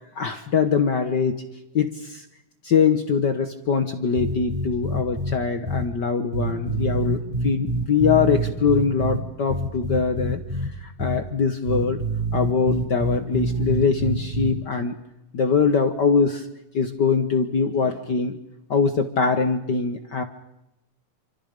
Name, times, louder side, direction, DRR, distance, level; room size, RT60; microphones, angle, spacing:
voice 1, 0.1-1.4 1.7-2.2 2.6-10.4 10.8-12.0 12.3-14.9 15.3-16.5 16.7-18.4 18.7-20.2, left 5 dB, 55° left, 8 dB, 1.2 m, -22 dB
sound 1, 4.2-5.3 5.7-5.8 6.3-9.2 9.5-10.7 11.0-11.2 11.7-14.5, right 2 dB, 15° right, 6.9 m, -26 dB
28.0 x 26.0 x 5.2 m, 0.89 s
omnidirectional pair, 3.5 m